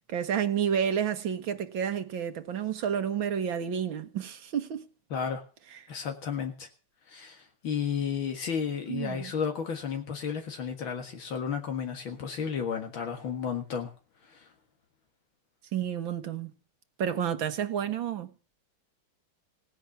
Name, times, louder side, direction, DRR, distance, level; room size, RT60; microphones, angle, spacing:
voice 1, 0.1-4.9 8.9-9.3 15.7-16.5 17.0-18.3, right 8 dB, 75° right, 2.1 m, -30 dB
voice 2, 5.1-5.4 5.9-6.7 7.1-13.9 14.3-14.5, left 7 dB, 80° left, 2.5 m, -33 dB
17.5 x 9.5 x 7.2 m
omnidirectional pair, 2.2 m